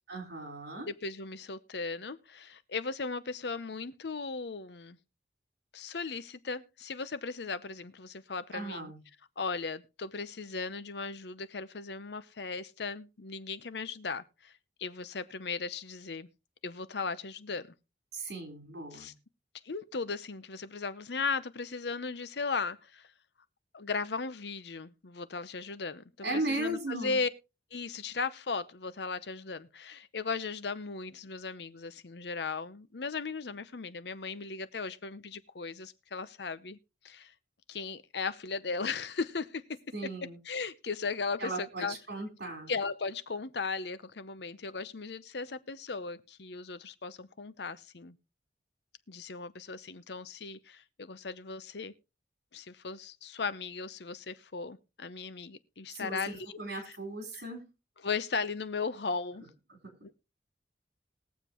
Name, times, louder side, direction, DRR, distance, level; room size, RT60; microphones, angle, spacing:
voice 1, 0.1-0.9 8.5-9.0 18.1-19.1 26.2-27.2 39.9-40.4 41.4-42.7 55.9-57.6, right 2 dB, 70° right, 3.9 m, -37 dB
voice 2, 0.8-5.0 5.7-8.9 9.4-14.5 14.8-16.3 16.6-17.7 18.9-19.1 19.6-23.1 23.7-27.3 27.7-36.8 37.0-37.3 37.7-39.8 40.4-42.0 42.7-48.2 49.1-51.9 52.5-56.6 58.0-59.5 60.0-60.1, left 4 dB, 70° left, 0.8 m, -37 dB
20.5 x 7.3 x 3.0 m
head